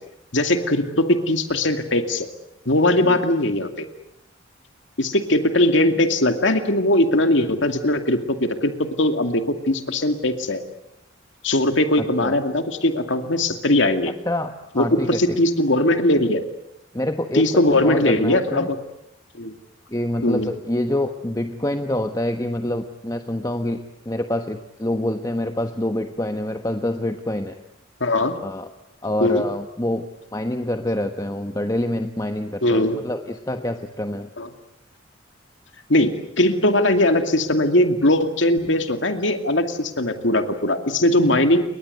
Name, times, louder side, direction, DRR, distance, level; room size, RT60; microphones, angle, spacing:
voice 1, 0.3-2.3 2.7-3.9 5.0-8.7 9.0-10.6 11.4-14.1 14.7-16.4 17.3-18.8 19.3-19.5 20.2-20.5 28.0-28.4 29.2-29.4 32.6-33.0 34.4-34.5 35.9-41.6, left 1 dB, 65° left, 7 dB, 2.4 m, -20 dB
voice 2, 12.0-12.4 14.3-15.2 16.9-18.7 19.9-27.6 28.4-28.7 29.0-30.1 30.3-34.3, left 1 dB, 20° left, 7 dB, 1.2 m, -26 dB
29.5 x 23.0 x 8.1 m, 0.79 s
head